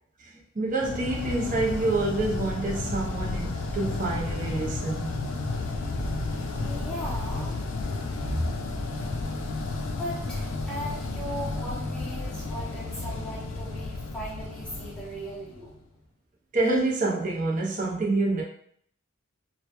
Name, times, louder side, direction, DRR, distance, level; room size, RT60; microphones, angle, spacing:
voice 1, 0.2-5.1 16.5-18.4, right 2 dB, 35° right, -3 dB, 0.5 m, -27 dB
sound 1, 0.8-15.8, left 2 dB, 65° left, 0.3 m, -32 dB
voice 2, 6.6-7.7 10.0-15.7, equal, 5° left, -8 dB, 0.6 m, -38 dB
2.1 x 2.1 x 2.8 m, 0.62 s
head